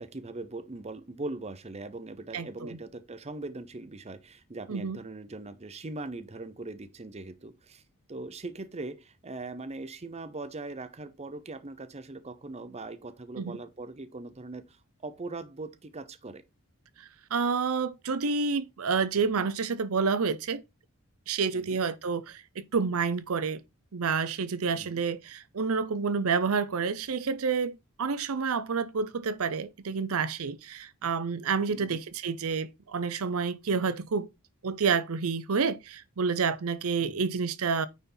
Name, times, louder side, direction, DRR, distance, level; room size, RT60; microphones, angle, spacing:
voice 1, 0.0-7.8 8.1-16.4 21.5-21.8 24.7-25.0 31.7-32.0 37.0-37.2, right 2 dB, 30° right, 0.7 m, -40 dB
voice 2, 2.3-2.7 4.7-5.0 13.4-13.6 17.0-20.6 21.3-23.6 23.9-34.3 34.6-37.9, right 5 dB, 70° right, 0.6 m, -29 dB
9.3 x 4.2 x 3.9 m
head